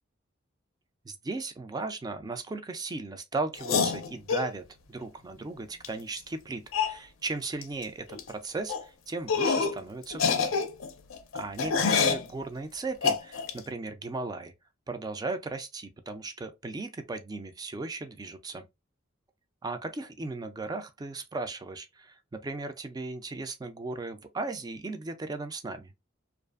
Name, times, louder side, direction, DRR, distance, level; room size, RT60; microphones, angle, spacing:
voice 1, 1.0-10.5 11.3-14.5 14.9-18.6 19.6-25.9, right 3 dB, 20° right, 0.3 m, -36 dB
sound 1, 3.6-4.5 5.8-5.9 6.2-6.3 6.7-7.0 7.6-7.8 8.1-8.3 8.7-8.8 9.3-9.8 10.1-12.3 13.0-13.6, left 5 dB, 80° left, 0.4 m, -26 dB
2.5 x 2.4 x 2.3 m
head